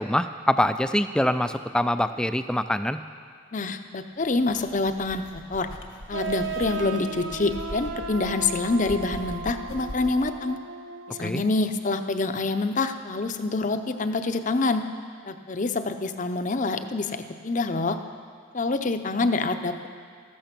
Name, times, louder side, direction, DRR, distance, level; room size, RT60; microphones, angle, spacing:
voice 1, 0.0-3.0 11.2-11.4, left 1 dB, 5° left, 10 dB, 0.4 m, -24 dB
voice 2, 3.5-5.7 6.1-10.6 11.1-14.8 15.2-18.0 18.5-19.9, left 3 dB, 40° left, 8 dB, 0.7 m, -26 dB
sound 1, 4.2-10.3, left 1 dB, 90° left, 1.9 m, -42 dB
sound 2, 6.1-11.6, right 4 dB, 75° right, 0.8 m, -35 dB
14.0 x 13.5 x 6.0 m, 2.1 s
head